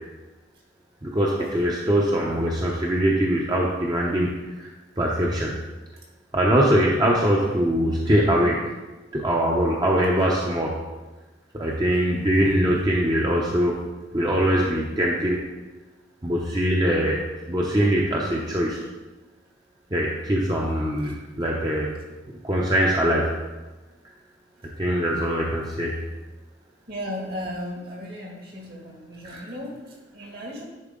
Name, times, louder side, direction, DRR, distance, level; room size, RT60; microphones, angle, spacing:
voice 1, 1.0-4.3 4.6-4.7 5.0-5.6 6.3-8.6 9.1-10.7 11.5-13.8 14.1-15.4 16.2-17.2 17.5-18.8 19.9-21.9 22.4-23.3 24.8-26.0 29.2-29.4, equal, 25° right, -2 dB, 0.7 m, -22 dB
voice 2, 9.6-10.1 19.9-20.3 21.0-21.1 26.9-30.6, equal, 55° right, -1 dB, 1.9 m, -36 dB
10.5 x 4.4 x 3.7 m, 1.2 s
head